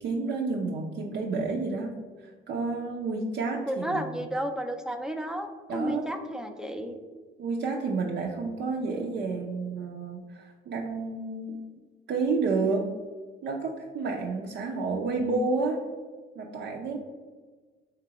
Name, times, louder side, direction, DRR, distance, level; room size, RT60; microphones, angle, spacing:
voice 1, 0.0-1.9 2.2-4.0 5.7-6.1 7.4-11.6 12.1-12.9 13.4-15.8 16.4-17.0, right 3 dB, 65° right, -1 dB, 0.5 m, -30 dB
voice 2, 3.7-7.0, equal, 5° right, 5 dB, 0.4 m, -32 dB
3.3 x 2.9 x 4.7 m, 1.4 s
cardioid pair, 90°, 20 cm